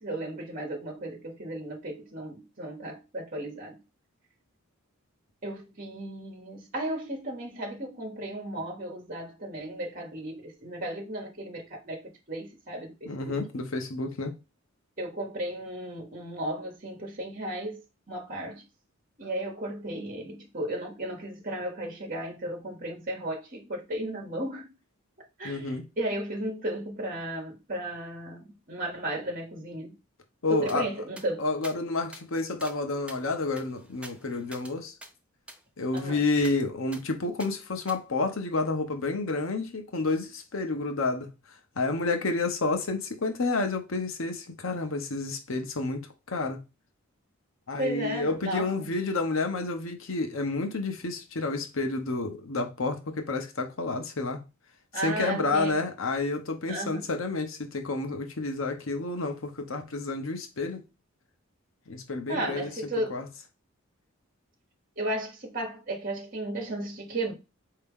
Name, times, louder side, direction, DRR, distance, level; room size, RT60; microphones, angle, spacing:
voice 1, 0.0-3.8 5.4-12.0 12.3-13.4 15.0-17.8 18.1-18.6 19.2-24.7 25.4-29.9 30.5-31.4 35.9-36.2 47.8-48.9 54.9-55.7 56.7-57.1 62.3-63.1 65.0-67.3, right 1 dB, 40° right, 1.2 m, -34 dB
voice 2, 13.0-14.3 25.4-25.8 30.4-30.9 31.4-34.9 35.8-41.3 41.8-46.0 46.3-46.6 47.7-54.4 55.0-60.8 61.9-62.7 63.1-63.3, left 3 dB, 65° left, 0.8 m, -30 dB
sound 1, 30.7-30.8 31.2-31.3 31.6-31.8 32.1-32.2 32.6-32.8 33.1-34.7 35.0-35.1 35.5-35.6 36.0-36.1 36.4-36.6 36.9-37.0 37.4-37.5 37.9-38.0, right 1 dB, 5° right, 0.5 m, -46 dB
4.5 x 2.8 x 3.5 m
head